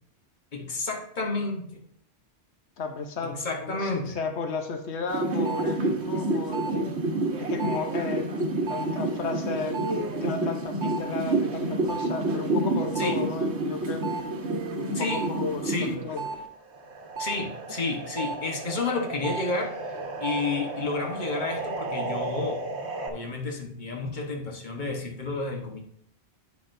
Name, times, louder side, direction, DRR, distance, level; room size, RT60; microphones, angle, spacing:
voice 1, 0.5-1.8 3.2-4.2 13.0-13.2 14.9-15.2 15.6-16.0 17.2-19.9 20.2-22.6 23.1-25.8, left 3 dB, 45° left, 1 dB, 1.3 m, -31 dB
voice 2, 2.8-6.7 7.5-8.4 8.7-9.8 10.2-14.0 14.8-15.6 16.0-16.2, left 4 dB, 80° left, 5 dB, 1.2 m, -33 dB
sound 1, 5.1-16.4 16.7-23.1, right 2 dB, 75° right, 1.4 m, -29 dB
10.5 x 8.3 x 2.6 m, 0.66 s
omnidirectional pair, 1.1 m